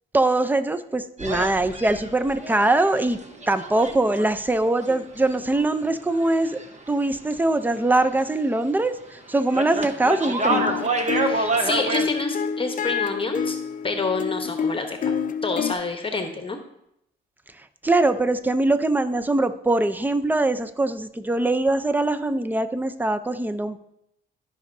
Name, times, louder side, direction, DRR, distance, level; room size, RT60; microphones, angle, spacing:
voice 1, 0.1-3.2 3.5-10.8 17.8-23.8, right 2 dB, 10° right, 11 dB, 0.5 m, -22 dB
sound 1, 1.2-7.0 7.2-8.5 8.8-12.1, right 2 dB, 35° right, 1.0 m, -29 dB
sound 2, 10.4-15.7, left 7 dB, 40° left, 0.5 m, -28 dB
voice 2, 11.1-13.6 13.8-15.1 15.4-16.6, left 3 dB, 25° left, 5 dB, 1.0 m, -28 dB
14.0 x 5.4 x 2.6 m, 0.80 s
cardioid pair, 90°, 20 cm